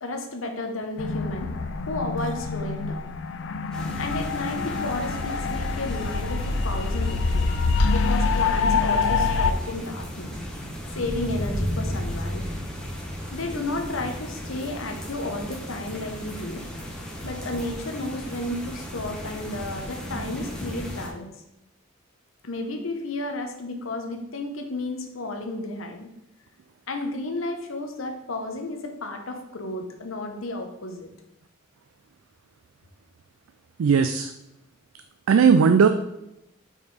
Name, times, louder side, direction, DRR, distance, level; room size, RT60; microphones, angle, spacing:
voice 1, 0.0-1.5 1.9-3.1 4.0-7.5 7.9-10.3 10.9-12.5 13.3-16.6 17.2-21.3 22.4-26.1 26.9-31.1, left 2 dB, 75° left, 4 dB, 0.9 m, -32 dB
sound 1, 1.0-9.5, left 4 dB, 60° left, 0.4 m, -25 dB
sound 2, 3.7-21.1, equal, 5° left, 0.9 m, -35 dB
voice 2, 33.8-34.3 35.3-35.9, right 6 dB, 80° right, 8 dB, 0.4 m, -17 dB
5.4 x 4.6 x 4.1 m, 0.87 s
head